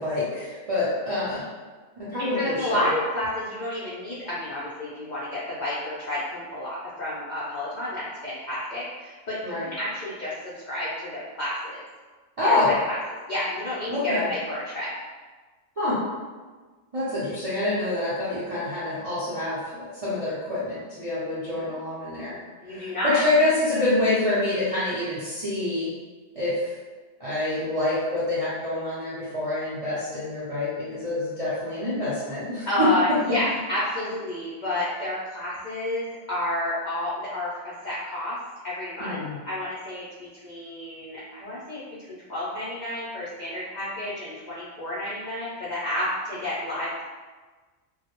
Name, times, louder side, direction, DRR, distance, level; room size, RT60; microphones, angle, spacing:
voice 1, 0.0-1.4 2.0-2.9 9.4-9.7 12.4-12.8 13.9-14.3 15.8-16.0 16.9-22.4 22.6-25.9 26.3-26.7 27.2-32.9 33.3-33.4 39.0-39.4, left 2 dB, 55° right, -11 dB, 0.4 m, -26 dB
voice 2, 2.2-11.8 12.4-13.0 13.3-14.9 21.2-21.7 22.6-23.2 32.7-38.4 38.6-47.0, left 1 dB, 65° left, -9 dB, 0.4 m, -30 dB
2.2 x 2.0 x 2.9 m, 1.3 s
omnidirectional pair, 1.4 m